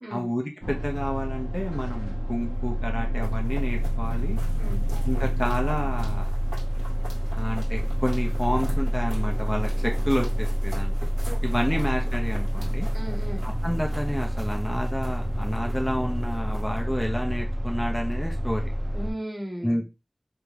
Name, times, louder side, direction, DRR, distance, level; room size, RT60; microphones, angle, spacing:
voice 1, 0.1-4.4 5.0-6.3 7.3-10.9 11.4-12.9 13.4-18.7 19.6-19.9, equal, 5° left, 1 dB, 0.8 m, -29 dB
sound 1, 0.6-19.1, equal, 25° right, 1.0 m, -27 dB
sound 2, 3.1-16.8, right 1 dB, 75° right, 2.0 m, -41 dB
voice 2, 11.3-11.8 12.9-13.4 18.9-19.9, right 1 dB, 50° right, 0 dB, 1.3 m, -36 dB
3.8 x 3.5 x 3.3 m, 0.27 s
wide cardioid pair, 45°, 0 cm